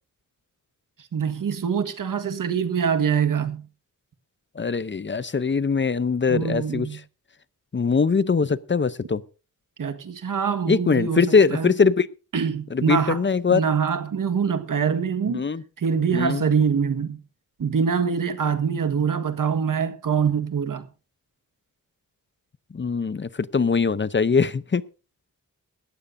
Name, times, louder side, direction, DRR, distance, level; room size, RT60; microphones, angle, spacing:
voice 1, 1.1-3.7 6.3-7.0 9.8-11.7 12.3-13.2 13.5-15.5 15.8-17.2 17.6-20.9, right 6 dB, 90° right, 1.6 m, -24 dB
voice 2, 4.6-6.9 7.7-9.2 10.7-12.1 12.7-13.6 15.3-15.6 16.1-16.4 22.7-24.8, left 5 dB, 35° left, 0.7 m, -22 dB
19.0 x 14.0 x 2.7 m
wide cardioid pair, 130°, 32 cm